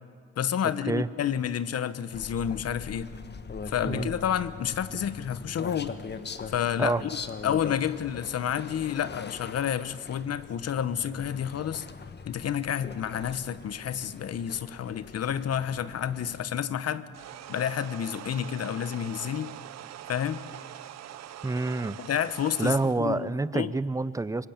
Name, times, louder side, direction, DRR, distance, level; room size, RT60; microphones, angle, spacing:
voice 1, 0.4-3.1 3.7-6.0 6.5-7.1 7.4-11.9 12.3-17.0 17.5-19.5 20.1-20.4 22.0-23.7, left 9 dB, 55° left, 14 dB, 1.0 m, -30 dB
sound 1, 2.1-16.4, left 5 dB, 35° left, 1.3 m, -42 dB
sound 2, 17.1-23.0, right 11 dB, 60° right, 0.8 m, -43 dB
voice 2, 21.4-22.0 22.6-24.5, right 3 dB, 10° right, 17 dB, 0.6 m, -27 dB
24.0 x 20.0 x 8.9 m, 2.1 s
cardioid pair, 90°, 30 cm